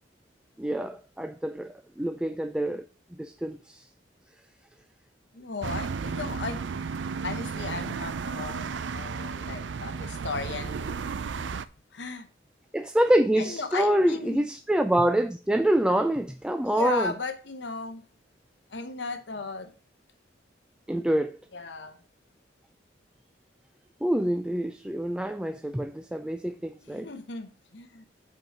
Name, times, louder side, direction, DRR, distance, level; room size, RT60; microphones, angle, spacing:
voice 1, 0.6-2.9 3.2-3.8 12.7-17.1 20.9-21.4 24.0-27.1, right 1 dB, 5° right, 0.3 m, -26 dB
voice 2, 5.3-6.6 7.2-11.1 11.3-12.3 13.4-14.4 16.7-18.0 18.7-19.7 21.5-22.0 26.8-28.0, left 4 dB, 65° left, 0.9 m, -36 dB
sound 1, 5.6-11.7, right 5 dB, 75° right, 0.5 m, -33 dB
7.5 x 4.7 x 6.4 m
head